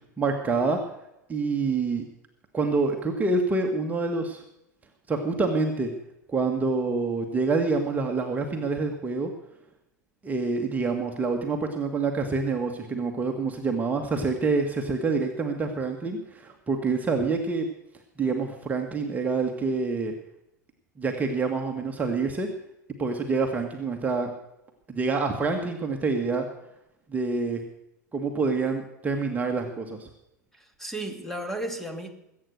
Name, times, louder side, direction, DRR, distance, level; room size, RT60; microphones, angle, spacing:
voice 1, 0.2-0.8 1.3-2.1 2.5-4.4 5.1-5.9 6.3-9.3 10.2-17.7 18.2-20.1 21.0-22.5 23.0-24.3 24.9-26.5 27.1-27.6 28.1-30.1, right 4 dB, 15° right, 1.8 m, -27 dB
voice 2, 30.6-32.1, right 1 dB, 5° left, 2.3 m, -34 dB
22.0 x 8.7 x 6.6 m
figure-of-eight pair, 85°, 10 cm